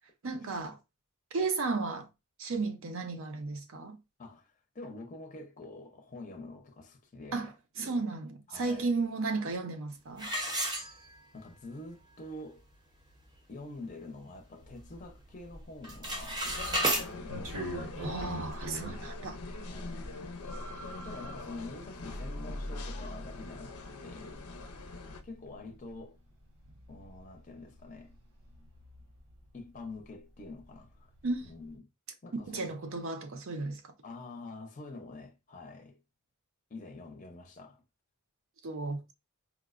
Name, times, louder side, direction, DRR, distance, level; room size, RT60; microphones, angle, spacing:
voice 1, 0.2-0.8 1.3-2.1 2.4-4.0 7.3-10.3 18.0-19.4 31.2-31.5 32.5-33.8 38.6-39.0, right 3 dB, 60° right, 0.6 m, -34 dB
voice 2, 4.2-7.5 8.5-8.9 10.2-11.0 11.3-12.6 13.5-18.1 19.7-20.2 21.0-24.3 25.2-26.2 26.9-28.1 29.5-31.1 31.4-31.8 32.2-32.8 34.0-36.0 36.7-37.8, left 2 dB, 35° left, 0.5 m, -47 dB
sound 1, 10.2-11.4 11.9-12.0 12.6-12.7 13.0-13.3 13.8-14.9 15.2-15.5 15.8-17.1, right 1 dB, 20° right, 0.6 m, -33 dB
sound 2, 14.6-30.1 30.4-31.7, right 1 dB, 90° right, 1.1 m, -45 dB
sound 3, 16.4-25.2, left 2 dB, 85° left, 0.5 m, -42 dB
4.6 x 2.1 x 2.4 m
head